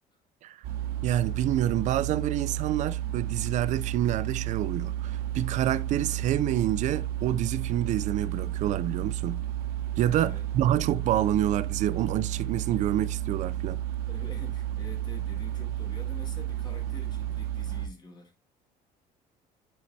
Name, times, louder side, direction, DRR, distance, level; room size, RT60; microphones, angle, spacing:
sound 1, 0.6-17.9, right 12 dB, 65° right, 1.0 m, -32 dB
voice 1, 1.0-9.4 10.0-13.8, right 11 dB, 50° right, 0.5 m, -28 dB
voice 2, 10.2-11.0 14.1-18.3, left 3 dB, 25° left, 2.0 m, -47 dB
10.5 x 4.4 x 2.7 m
cardioid pair, 155°, 16 cm